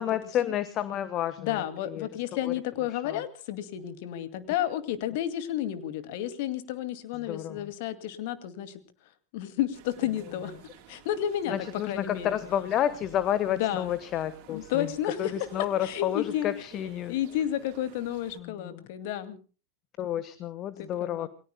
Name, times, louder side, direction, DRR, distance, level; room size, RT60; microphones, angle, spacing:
voice 1, 0.0-2.1 2.4-2.6 2.9-3.2 7.1-7.7 11.5-14.9 15.2-17.1 18.3-18.9 20.0-21.3, left 11 dB, 35° left, 14 dB, 1.3 m, -30 dB
voice 2, 1.4-8.8 9.3-10.6 10.9-11.6 11.9-12.3 13.5-13.9 14.5-15.3 15.8-16.5 17.1-19.4 20.8-21.3, left 11 dB, 50° left, 12 dB, 2.2 m, -31 dB
sound 1, 9.7-18.4, right 10 dB, 45° right, 3.8 m, -52 dB
28.5 x 21.5 x 2.2 m, 0.37 s
figure-of-eight pair, 90°, 0 cm